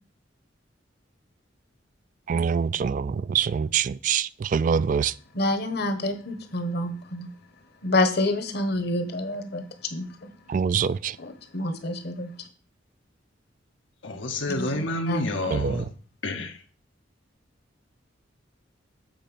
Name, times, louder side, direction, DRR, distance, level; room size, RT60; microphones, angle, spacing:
voice 1, 2.3-5.1 10.5-11.2 15.5-15.9, right 6 dB, 45° right, 0.3 m, -25 dB
voice 2, 5.3-7.3 7.8-10.1 11.2-12.3 14.6-15.3, left 1 dB, 55° left, 1.3 m, -27 dB
voice 3, 14.0-15.9 16.2-16.6, left 1 dB, 80° left, 1.1 m, -29 dB
7.9 x 4.2 x 6.9 m
head